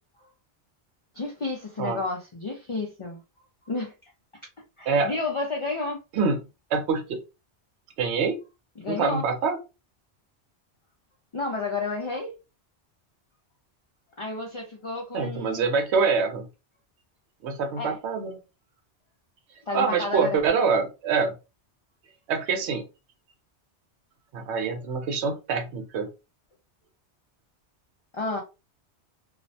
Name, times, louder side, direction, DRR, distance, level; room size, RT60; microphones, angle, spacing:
voice 1, 1.1-3.2 3.7-3.9 4.8-6.0 8.8-9.3 11.3-12.3 14.2-15.7 17.8-18.0 19.7-20.4 28.1-28.4, left 3 dB, 50° left, 0.3 m, -31 dB
voice 2, 6.7-7.2 8.0-8.4 8.9-9.6 15.1-16.5 17.4-18.4 19.7-21.3 22.3-22.8 24.3-26.1, right 5 dB, 80° right, 0.9 m, -25 dB
2.4 x 2.1 x 2.6 m
omnidirectional pair, 1.1 m